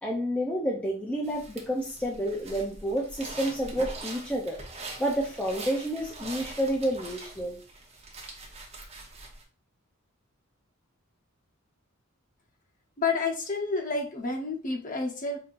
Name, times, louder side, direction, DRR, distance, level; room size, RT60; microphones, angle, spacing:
voice 1, 0.0-4.6 5.0-7.6, equal, 5° left, 0.5 m, -29 dB
sound 1, 1.2-9.4, right 2 dB, 30° right, 0.8 m, -43 dB
voice 2, 13.0-15.4, left 4 dB, 40° left, 0.9 m, -29 dB
5.2 x 2.7 x 2.5 m
head